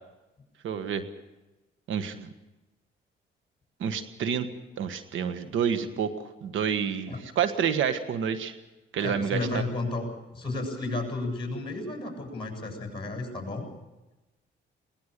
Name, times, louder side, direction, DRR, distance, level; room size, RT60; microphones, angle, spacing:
voice 1, 0.6-1.0 1.9-2.3 3.8-4.5 4.8-8.5 8.9-9.6, right 7 dB, 75° right, 9 dB, 1.5 m, -29 dB
voice 2, 9.0-13.7, left 2 dB, 25° left, 3 dB, 7.4 m, -33 dB
21.0 x 19.5 x 6.7 m, 1.0 s
cardioid pair, 90°, 20 cm